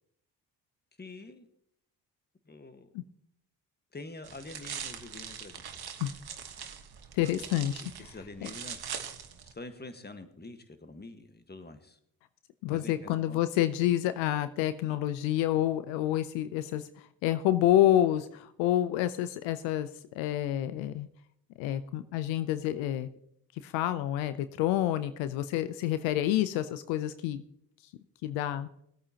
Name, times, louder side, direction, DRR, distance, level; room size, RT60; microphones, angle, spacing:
voice 1, 1.0-1.5 2.5-2.9 3.9-5.6 8.0-8.9 9.5-12.0 12.7-13.4, left 2 dB, 20° left, 9 dB, 1.5 m, -46 dB
sound 1, 4.2-9.5, right 7 dB, 55° right, 1.4 m, -42 dB
voice 2, 7.1-7.8 8.4-8.5 12.6-16.9 17.2-19.9 20.2-21.1 21.6-23.1 23.6-27.4 28.2-28.7, left 13 dB, 85° left, 13 dB, 0.6 m, -28 dB
18.0 x 8.6 x 2.9 m, 0.71 s
hypercardioid pair, 45°, 45 cm